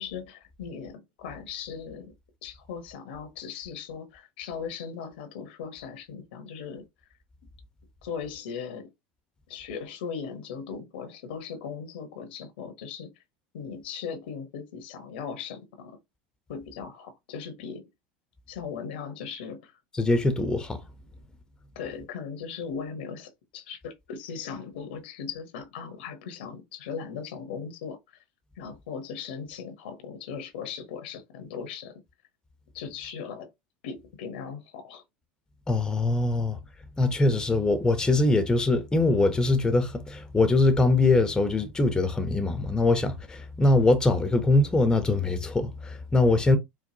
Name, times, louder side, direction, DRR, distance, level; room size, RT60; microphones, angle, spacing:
voice 1, 0.0-2.1 2.4-6.8 8.0-8.9 9.5-13.1 13.5-16.0 16.5-17.9 18.5-19.8 21.7-28.2 28.6-31.9 32.7-33.5 33.8-35.0, left 6 dB, 80° left, 0.9 m, -38 dB
voice 2, 19.9-20.8 35.7-36.6 37.0-46.6, left 2 dB, 15° left, 0.7 m, -23 dB
4.5 x 2.2 x 2.7 m
supercardioid pair, 100°, 5 cm